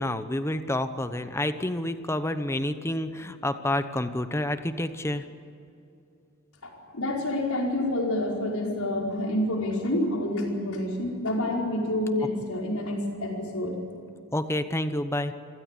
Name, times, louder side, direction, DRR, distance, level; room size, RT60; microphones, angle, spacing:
voice 1, 0.0-5.2 14.3-15.3, left 1 dB, 10° left, 10 dB, 1.0 m, -29 dB
voice 2, 6.6-13.8, left 1 dB, 80° left, -1 dB, 5.1 m, -28 dB
27.0 x 16.0 x 8.4 m, 2.7 s
head